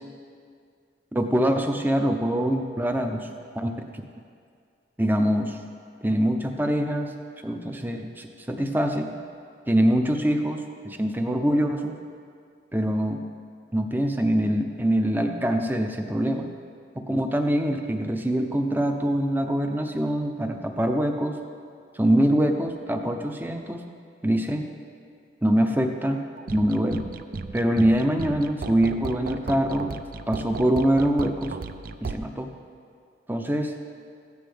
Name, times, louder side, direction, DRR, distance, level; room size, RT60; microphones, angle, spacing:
voice 1, 1.1-3.3 3.6-3.7 5.0-5.6 6.0-7.1 7.4-9.1 9.7-11.9 12.7-13.2 13.7-16.5 17.0-21.4 22.0-23.8 24.2-24.7 25.4-26.2 26.5-27.1 27.5-29.9 30.3-31.5 32.0-32.5 33.3-33.7, right 1 dB, 10° right, 4 dB, 0.6 m, -24 dB
sound 1, 26.4-32.1, right 4 dB, 50° right, 0.4 m, -35 dB
15.0 x 9.5 x 3.4 m, 2.2 s
head